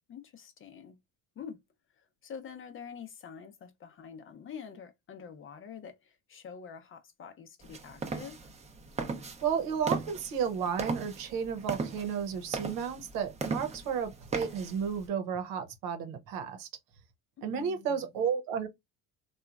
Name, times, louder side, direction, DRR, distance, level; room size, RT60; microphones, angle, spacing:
voice 1, 0.1-1.0 1.4-1.6 1.9-8.5 17.4-18.1, left 7 dB, 40° left, 0.6 m, -46 dB
sound 1, 7.6-15.1, right 4 dB, 20° right, 0.6 m, -38 dB
voice 2, 9.4-16.7 17.4-18.7, right 7 dB, 80° right, 0.9 m, -32 dB
2.9 x 2.3 x 2.3 m
supercardioid pair, 100°, 33 cm